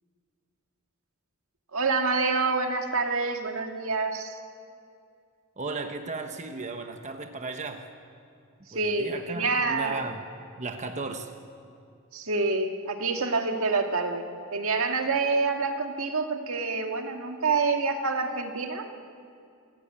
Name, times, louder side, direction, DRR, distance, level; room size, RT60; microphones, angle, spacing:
voice 1, 1.7-4.4 8.7-10.0 12.1-18.8, right 4 dB, 75° right, 4 dB, 1.9 m, -27 dB
voice 2, 5.6-7.8 8.7-10.3 10.6-11.3, right 3 dB, 35° right, 5 dB, 1.0 m, -35 dB
25.0 x 15.5 x 8.8 m, 2.4 s
head